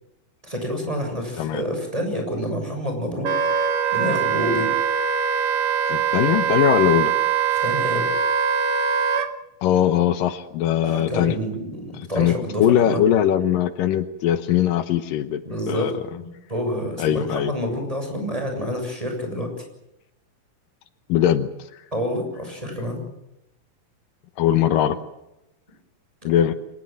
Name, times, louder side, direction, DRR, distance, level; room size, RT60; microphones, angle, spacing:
voice 1, 0.4-3.3 3.9-4.7 7.6-8.1 10.8-13.0 15.4-19.5 21.9-23.0 26.2-26.3, equal, 10° right, 3 dB, 6.8 m, -28 dB
Wind instrument woodwind instrument, 3.2-9.3, right 7 dB, 50° right, 1.9 m, -22 dB
voice 2, 5.9-7.1 9.6-11.4 11.9-15.4 15.7-15.9 17.0-17.5 21.1-21.5 24.4-25.0 26.2-26.5, left 11 dB, 80° left, 11 dB, 2.7 m, -20 dB
25.0 x 20.0 x 7.7 m, 0.89 s
omnidirectional pair, 3.9 m